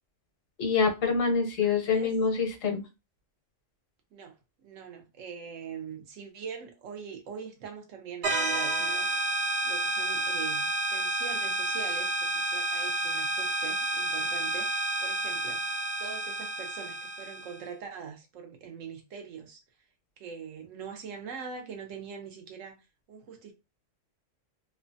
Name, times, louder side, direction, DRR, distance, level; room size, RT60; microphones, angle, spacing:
voice 1, 0.6-2.8, left 5 dB, 85° left, 1.2 m, -26 dB
voice 2, 1.6-2.1 4.1-4.4 4.6-9.1 9.6-15.6 16.0-19.6 20.2-23.5, right 6 dB, 85° right, 1.1 m, -43 dB
sound 1, 8.2-17.6, right 2 dB, 60° right, 0.8 m, -30 dB
3.1 x 2.2 x 2.6 m
omnidirectional pair, 1.3 m